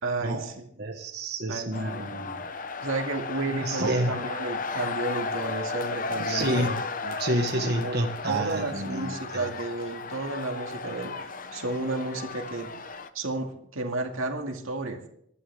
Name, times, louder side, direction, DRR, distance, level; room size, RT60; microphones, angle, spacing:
voice 1, 0.0-0.6 1.5-2.1 2.8-6.8 7.0-7.2 7.8-8.0 8.2-11.1 11.5-12.7 13.1-15.0, right 2 dB, 85° right, 3 dB, 2.2 m, -32 dB
voice 2, 0.8-2.4 3.5-4.2 6.1-6.8 7.2-9.5, right 1 dB, 50° right, 2 dB, 1.5 m, -29 dB
sound 1, 1.7-13.1, left 4 dB, 40° left, 0.8 m, -35 dB
25.0 x 11.5 x 3.6 m, 0.70 s
head